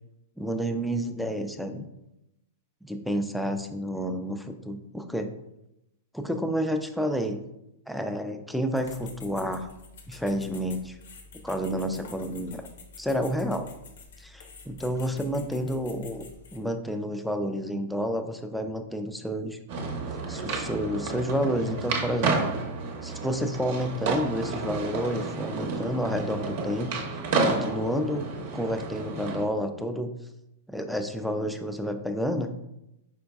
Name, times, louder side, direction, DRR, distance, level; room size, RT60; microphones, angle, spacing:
voice 1, 0.4-1.9 2.8-5.3 6.1-7.4 7.9-9.7 10.1-11.0 11.4-12.6 13.0-13.7 14.2-16.3 16.5-19.6 20.3-22.5 23.0-27.0 27.4-28.3 28.5-30.1 30.7-32.6, equal, ahead, 6 dB, 0.3 m, -30 dB
sound 1, 8.7-16.6, left 4 dB, 80° left, 0.7 m, -48 dB
sound 2, 19.7-29.5, right 3 dB, 55° right, 0.7 m, -31 dB
5.1 x 3.9 x 2.3 m, 0.88 s
hypercardioid pair, 145°, 0 cm